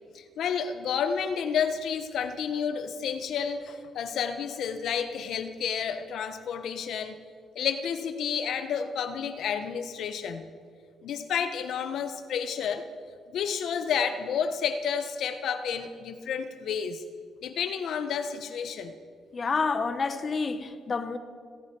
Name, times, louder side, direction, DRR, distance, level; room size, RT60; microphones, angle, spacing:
voice 1, 0.1-7.2 7.5-10.5 11.0-12.9 13.3-17.0 17.4-18.9, left 7 dB, 70° left, 1.0 m, -30 dB
voice 2, 19.3-21.2, left 4 dB, 40° left, 1.1 m, -28 dB
28.5 x 10.5 x 4.7 m
cardioid pair, 90°, 0 cm